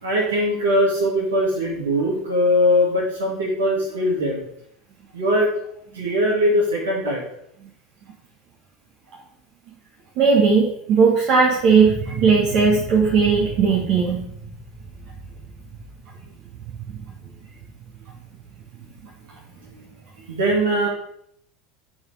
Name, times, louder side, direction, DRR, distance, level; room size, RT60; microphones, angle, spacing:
voice 1, 0.0-4.4 5.1-5.5 5.9-7.2 19.7-19.8 20.3-20.9, equal, 85° right, -4 dB, 1.9 m, -21 dB
voice 2, 10.2-14.2, right 5 dB, 55° right, -3 dB, 1.3 m, -17 dB
6.2 x 3.9 x 4.8 m, 0.72 s
hypercardioid pair, 80°, 0 cm